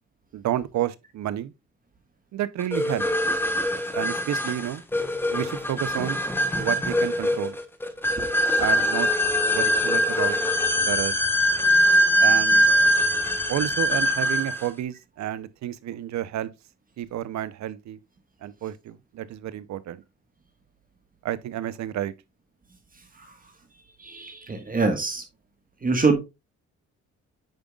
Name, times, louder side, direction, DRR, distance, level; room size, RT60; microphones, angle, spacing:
voice 1, 0.3-1.5 2.3-3.1 3.9-4.8 5.3-6.2 6.6-7.6 8.6-9.1 9.5-10.4 10.8-11.2 12.2-12.9 13.5-16.5 17.0-18.0 18.4-20.0 21.2-22.1, right 12 dB, 65° right, 0.7 m, -30 dB
sound 1, 2.7-14.7, equal, 5° left, 1.1 m, -22 dB
voice 2, 24.0-25.2 25.8-26.2, right 3 dB, 30° right, 1.5 m, -24 dB
8.9 x 5.2 x 2.3 m
cardioid pair, 90°, 30 cm